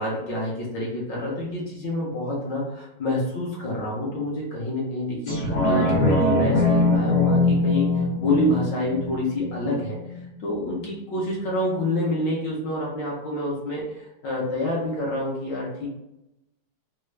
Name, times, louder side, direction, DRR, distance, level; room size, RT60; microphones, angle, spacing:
voice 1, 0.0-10.0 10.4-15.9, left 1 dB, 70° left, -4 dB, 1.5 m, -27 dB
sound 1, 5.3-10.3 10.7-10.8, left 2 dB, 50° left, 1.3 m, -22 dB
3.7 x 2.4 x 3.1 m, 0.89 s
omnidirectional pair, 2.1 m